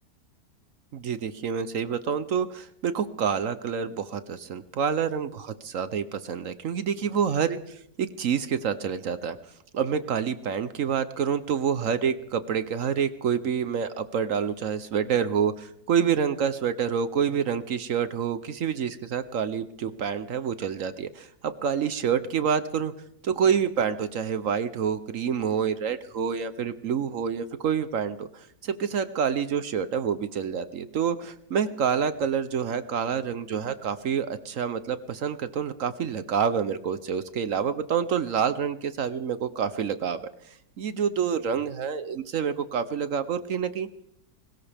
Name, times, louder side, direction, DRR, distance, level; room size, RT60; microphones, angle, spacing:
voice 1, 0.9-9.4 9.7-22.9 23.2-40.2 40.8-43.9, right 7 dB, 60° right, 13 dB, 1.0 m, -27 dB
21.5 x 19.5 x 3.4 m, 0.74 s
omnidirectional pair, 1.7 m